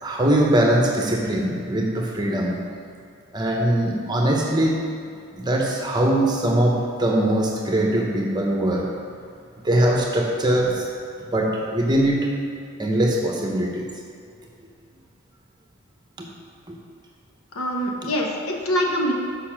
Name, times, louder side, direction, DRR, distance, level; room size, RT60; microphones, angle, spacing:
voice 1, 0.0-2.6 3.3-4.8 5.3-8.9 9.6-10.9 11.2-12.3 12.8-13.9 16.2-16.3 16.7-16.8, right 1 dB, 20° right, -1 dB, 0.9 m, -21 dB
voice 2, 17.5-19.1, equal, 85° left, -1 dB, 1.1 m, -24 dB
6.9 x 5.4 x 5.9 m, 2.4 s
head